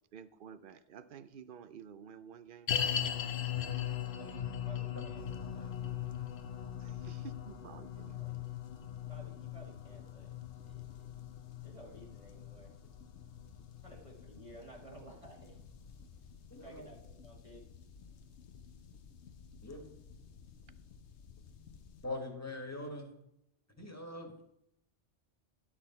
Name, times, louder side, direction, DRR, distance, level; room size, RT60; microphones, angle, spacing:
voice 1, 0.1-2.7 6.8-8.2, right 7 dB, 55° right, 12 dB, 0.7 m, -51 dB
sound 1, 2.7-14.0 14.2-14.3 15.0-15.1, left 9 dB, 60° left, 0.8 m, -39 dB
voice 2, 3.9-5.7 8.1-8.4 9.1-10.4 10.6-11.1 11.6-12.7 13.8-15.6 16.6-17.7, right 1 dB, 30° right, -3 dB, 1.7 m, -55 dB
sound 2, 5.2-22.1, left 6 dB, 75° left, 1.0 m, -55 dB
voice 3, 16.5-16.8 19.6-19.9 22.0-23.1 23.8-24.4, left 2 dB, 15° left, 1 dB, 1.7 m, -42 dB
12.0 x 6.1 x 4.4 m, 0.81 s
omnidirectional pair, 1.2 m